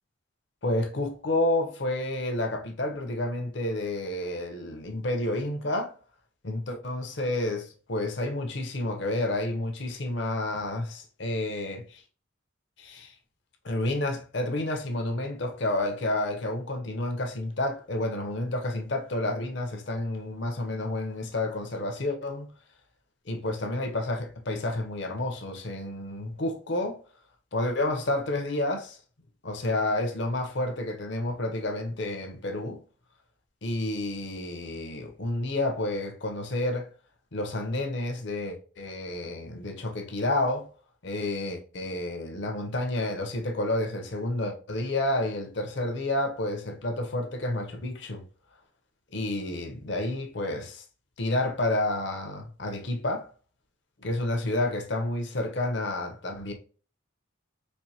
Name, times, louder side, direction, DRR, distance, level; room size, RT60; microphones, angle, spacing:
voice 1, 0.6-5.9 6.4-12.0 12.8-13.1 13.6-22.5 23.3-27.0 27.5-29.0 29.4-32.8 33.6-36.9 37.3-40.7 41.0-48.2 49.1-50.8 51.2-53.3 54.0-56.5, left 1 dB, 60° left, 0.8 m, -30 dB
4.4 x 2.6 x 2.8 m
head